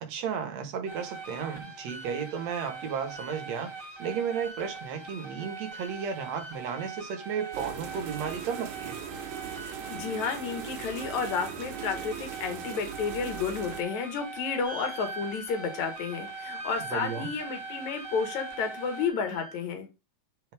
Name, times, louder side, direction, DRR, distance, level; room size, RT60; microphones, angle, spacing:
voice 1, 0.0-9.0 16.9-17.3, right 7 dB, 65° right, 2.4 m, -34 dB
sound 1, 0.9-19.1, right 3 dB, 15° right, 2.2 m, -42 dB
sound 2, 7.5-13.8, right 9 dB, 90° right, 2.5 m, -40 dB
voice 2, 9.9-19.9, left 5 dB, 70° left, 3.0 m, -31 dB
sound 3, 14.6-19.6, right 2 dB, 30° right, 2.0 m, -44 dB
10.0 x 4.7 x 3.5 m
omnidirectional pair, 3.4 m